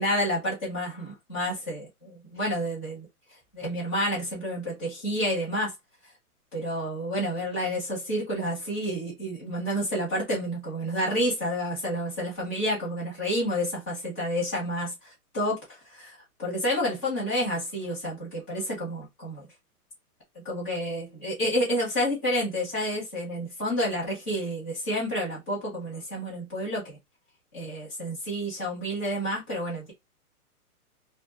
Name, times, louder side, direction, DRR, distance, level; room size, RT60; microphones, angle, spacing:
voice 1, 0.0-3.1 3.5-5.7 6.5-14.9 15.3-15.6 15.9-19.4 20.4-27.0 27.5-29.9, equal, 10° left, 0.6 m, -29 dB
2.3 x 2.1 x 3.1 m
hypercardioid pair, 170°, 45 cm